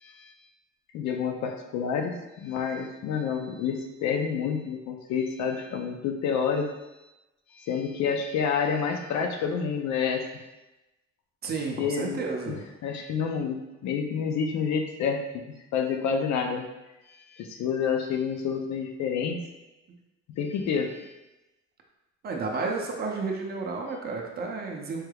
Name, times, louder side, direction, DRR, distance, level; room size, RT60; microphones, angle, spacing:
voice 1, 0.0-0.3 0.9-6.7 7.5-10.3 11.8-12.2 12.5-12.6 12.8-15.4 15.7-16.7 17.3-19.4 20.4-21.1, left 6 dB, 65° left, 4 dB, 0.5 m, -28 dB
voice 2, 11.4-12.6 22.2-25.0, right 4 dB, 35° right, 0 dB, 0.5 m, -31 dB
4.5 x 3.2 x 2.3 m, 1.0 s
cardioid pair, 165°, 30 cm